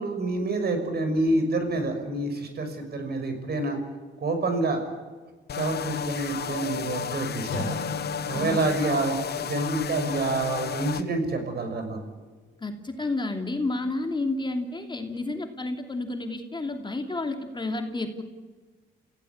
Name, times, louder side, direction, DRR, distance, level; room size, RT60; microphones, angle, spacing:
voice 1, 0.0-3.8 4.2-4.8 5.5-7.8 8.3-12.0, right 2 dB, 55° right, 6 dB, 6.2 m, -27 dB
sound 1, 5.5-11.0, left 8 dB, 55° left, 1.1 m, -33 dB
Acoustic guitar, 7.5-11.4, left 3 dB, 80° left, 3.7 m, -39 dB
voice 2, 8.3-8.7 12.6-18.2, left 2 dB, 25° left, 4 dB, 2.8 m, -31 dB
28.0 x 16.5 x 8.6 m, 1.3 s
cardioid pair, 90°, 20 cm